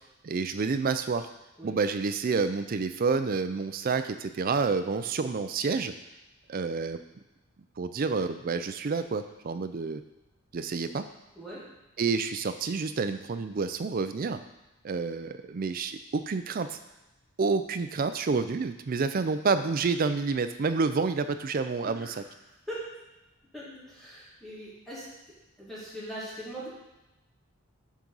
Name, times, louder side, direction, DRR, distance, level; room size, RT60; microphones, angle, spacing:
voice 1, 0.2-1.3 1.6-5.9 6.5-7.0 7.8-10.0 10.5-11.0 12.0-14.4 14.8-16.8 17.4-22.1, right 4 dB, 40° right, 10 dB, 0.4 m, -29 dB
voice 2, 21.8-22.2 22.7-22.9 23.5-25.0 25.6-26.7, right 1 dB, ahead, -9 dB, 2.2 m, -40 dB
7.5 x 3.8 x 5.4 m, 1.0 s
head